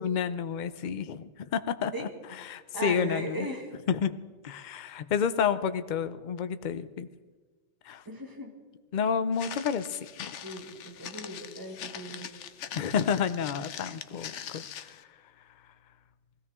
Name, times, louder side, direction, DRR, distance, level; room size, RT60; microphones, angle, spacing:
voice 1, 0.0-2.1 2.4-3.5 3.9-4.2 4.4-7.1 7.8-8.0 8.9-10.3 12.8-15.1, left 7 dB, 50° left, 12 dB, 0.6 m, -30 dB
voice 2, 2.7-3.7 8.1-8.5 10.4-12.3, right 1 dB, 15° right, 1 dB, 1.9 m, -37 dB
Walk footsteps, 9.3-15.0, left 9 dB, 80° left, 1.0 m, -42 dB
20.5 x 15.5 x 3.7 m, 1.4 s
omnidirectional pair, 1.2 m